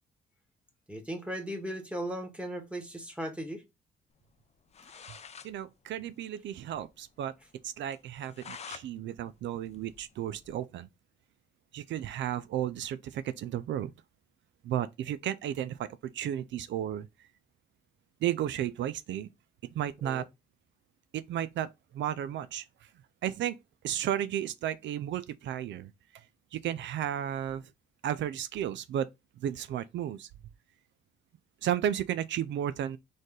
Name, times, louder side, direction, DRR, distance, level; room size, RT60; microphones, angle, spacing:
voice 1, 0.9-3.6 20.0-20.2, right 1 dB, 5° right, 1.6 m, -37 dB
sound 1, 4.5-4.6 4.7-5.5 5.9-6.0 6.2-6.3 6.7-6.8 7.2-7.3 7.9-8.9 9.3-10.6, left 6 dB, 35° left, 0.5 m, -47 dB
voice 2, 5.4-7.3 7.6-10.9 11.7-13.9 14.6-15.9 16.1-17.1 18.2-19.3 19.8-20.2 21.1-21.7 21.9-22.6 23.2-23.6 23.8-25.9 26.5-27.6 28.0-29.1 29.4-30.3 31.6-33.0, right 11 dB, 70° right, 0.4 m, -33 dB
4.1 x 3.3 x 3.8 m
cardioid pair, 90°, 20 cm